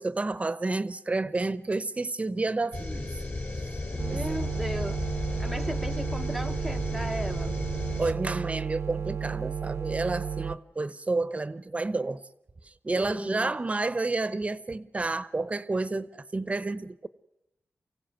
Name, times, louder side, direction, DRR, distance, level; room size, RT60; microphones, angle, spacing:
voice 1, 0.0-3.1 4.1-4.2 8.0-12.2 12.8-17.1, right 3 dB, 30° right, 0.8 m, -30 dB
sound 1, 2.7-8.1, left 2 dB, 50° left, 3.0 m, -34 dB
voice 2, 3.9-5.0 5.4-7.6 12.9-13.5, equal, 5° left, 0.8 m, -36 dB
sound 2, 4.0-10.6, right 7 dB, 75° right, 0.7 m, -33 dB
24.0 x 16.0 x 9.2 m
wide cardioid pair, 95°, 4 cm